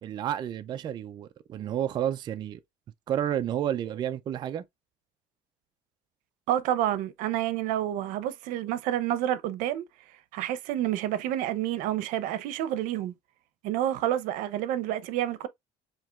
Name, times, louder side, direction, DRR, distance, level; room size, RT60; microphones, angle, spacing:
voice 1, 0.0-2.6 3.1-4.6, right 10 dB, 35° right, 0.3 m, -30 dB
voice 2, 6.5-9.9 10.3-13.1 13.6-15.5, right 12 dB, 85° right, 0.7 m, -29 dB
7.4 x 2.8 x 2.3 m
cardioid pair, 155°, 13 cm